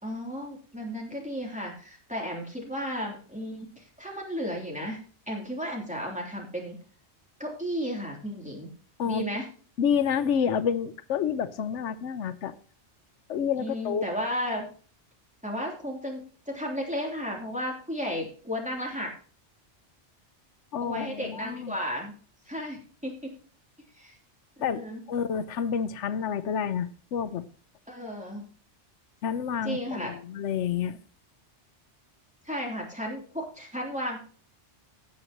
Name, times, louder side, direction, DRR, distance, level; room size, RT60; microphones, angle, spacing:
voice 1, 0.0-5.0 5.3-6.8 7.4-8.7 9.0-9.5 13.6-14.7 15.4-19.1 20.8-22.1 22.5-23.3 23.9-24.2 24.6-25.0 27.9-28.4 29.6-30.1 32.4-34.2, equal, 5° right, -1 dB, 3.2 m, -34 dB
voice 2, 9.8-12.6 13.3-14.0 20.7-21.8 24.6-24.8 25.1-27.5 29.2-31.0, left 7 dB, 90° left, 14 dB, 1.0 m, -29 dB
17.0 x 7.6 x 3.0 m, 0.41 s
omnidirectional pair, 1.2 m